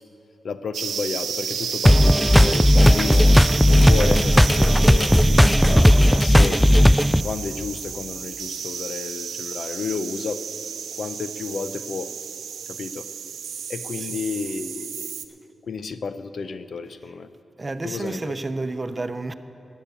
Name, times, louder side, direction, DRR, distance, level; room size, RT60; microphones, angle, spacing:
voice 1, 0.4-5.1 5.6-6.6 7.2-10.4 11.0-12.1 12.7-13.1 13.7-15.1 15.7-17.3 17.8-18.4, left 5 dB, 70° left, 0.6 m, -31 dB
sound 1, 0.7-15.2, right 7 dB, 85° right, 0.6 m, -32 dB
sound 2, 1.9-7.2, equal, ahead, 0.3 m, -15 dB
voice 2, 17.6-19.3, right 2 dB, 35° right, 0.7 m, -30 dB
12.0 x 9.2 x 8.4 m
supercardioid pair, 45°, 0 cm